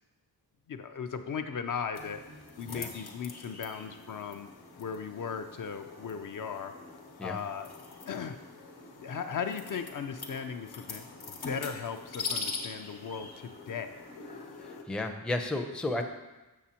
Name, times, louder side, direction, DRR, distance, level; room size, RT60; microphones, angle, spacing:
voice 1, 0.7-2.2 2.6-4.5 4.8-6.7 7.2-7.7 8.1-8.4 9.0-11.1 11.4-13.9, left 6 dB, 55° left, 7 dB, 0.5 m, -37 dB
sound 1, 2.0-14.8, left 4 dB, 70° left, 1.0 m, -43 dB
voice 2, 14.6-16.0, left 2 dB, 5° left, 3 dB, 0.4 m, -33 dB
7.3 x 6.7 x 2.8 m, 1.1 s
wide cardioid pair, 105°, 38 cm